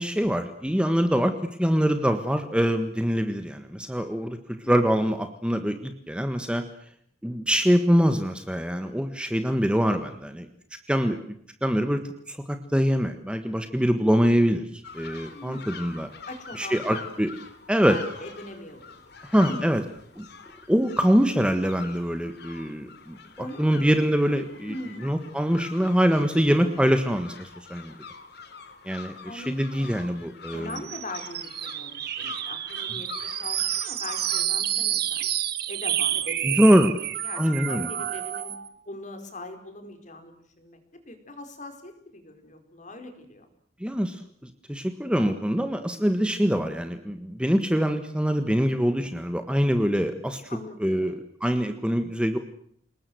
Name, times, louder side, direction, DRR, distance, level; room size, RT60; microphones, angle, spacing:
voice 1, 0.0-1.3 1.6-4.4 4.7-6.6 7.2-10.5 10.9-11.2 11.6-12.0 12.3-16.1 16.5-17.3 17.7-18.0 19.3-19.8 20.2-20.3 20.7-24.7 25.0-27.9 28.8-30.7 36.4-36.9 37.4-37.9 43.8-50.4 50.8-51.1 51.4-52.4, equal, 5° right, 7 dB, 1.5 m, -24 dB
sound 1, 14.8-34.5, left 5 dB, 60° left, 3.4 m, -44 dB
voice 2, 15.3-15.7 16.3-17.0 17.7-18.8 19.2-19.9 23.4-23.9 24.6-25.1 29.2-30.1 30.5-35.3 35.7-36.6 36.9-38.5 38.9-43.5 50.5-51.1, left 2 dB, 40° left, 7 dB, 4.6 m, -41 dB
sound 2, 30.7-38.7, right 11 dB, 55° right, 1.8 m, -29 dB
29.0 x 20.0 x 7.8 m, 0.66 s
head